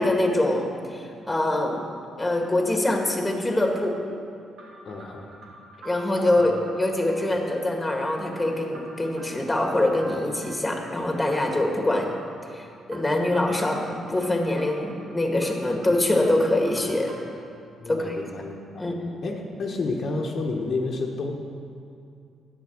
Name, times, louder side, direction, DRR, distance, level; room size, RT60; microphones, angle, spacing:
voice 1, 0.0-1.8 2.2-4.0 5.8-12.2 12.5-17.1 17.9-18.3 18.8-19.0, left 1 dB, 10° left, 2 dB, 1.7 m, -24 dB
sound 1, 4.6-17.5, right 2 dB, 80° right, 1.9 m, -47 dB
voice 2, 4.9-5.3 6.4-6.5 17.8-18.8 19.2-21.3, left 3 dB, 55° left, 0 dB, 1.2 m, -30 dB
10.5 x 8.1 x 6.3 m, 2.5 s
cardioid pair, 90°, 0 cm